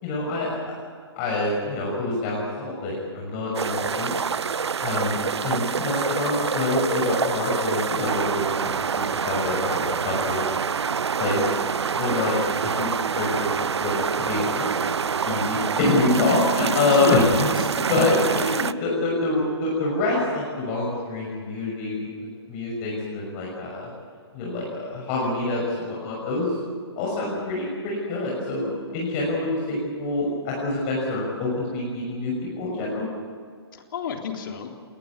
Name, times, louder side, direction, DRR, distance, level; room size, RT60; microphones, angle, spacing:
voice 1, 0.0-0.6 1.2-4.2 4.8-5.2 5.4-10.5 11.2-11.5 12.0-12.4 12.6-14.9 15.2-17.5 17.9-23.9 24.3-26.5 27.0-33.1, left 2 dB, 35° left, -3 dB, 6.2 m, -26 dB
sound 1, 3.5-18.7, right 6 dB, 80° right, 0.6 m, -26 dB
voice 2, 5.2-5.5 12.1-12.3 16.9-17.8 18.3-18.4 33.7-34.7, left 6 dB, 55° left, 3 dB, 3.6 m, -32 dB
21.0 x 20.0 x 8.6 m, 2.1 s
hypercardioid pair, 135°, 14 cm